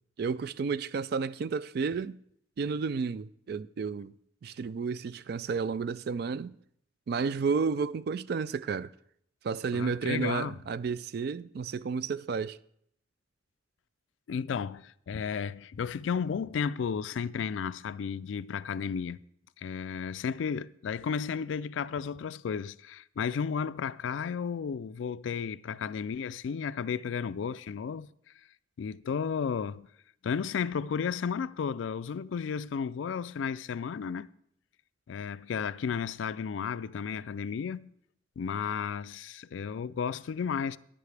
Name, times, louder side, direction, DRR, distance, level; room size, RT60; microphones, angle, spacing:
voice 1, 0.2-2.2 2.6-4.1 4.4-6.6 7.1-8.9 9.4-12.6, right 5 dB, 55° right, 0.3 m, -31 dB
voice 2, 9.7-10.6 14.3-19.2 19.6-28.1 28.8-29.9 30.2-34.3 35.1-37.9 38.4-40.8, left 6 dB, 80° left, 0.3 m, -33 dB
13.0 x 10.5 x 3.3 m
head